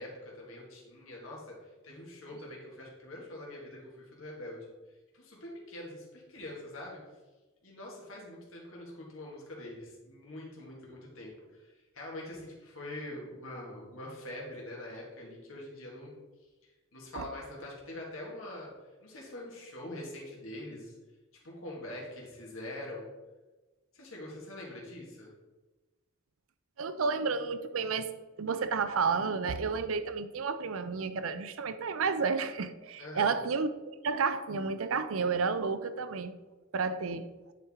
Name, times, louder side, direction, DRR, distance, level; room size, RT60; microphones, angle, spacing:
voice 1, 0.0-1.6 1.8-4.7 5.1-7.0 7.6-16.1 16.6-18.7 19.0-20.9 21.4-23.1 23.9-25.3 33.0-33.3, left 1 dB, 80° left, -3 dB, 1.9 m, -44 dB
voice 2, 26.8-28.1 28.4-36.3 36.7-37.3, right 5 dB, 80° right, 11 dB, 0.5 m, -31 dB
9.3 x 4.5 x 3.6 m, 1.2 s
head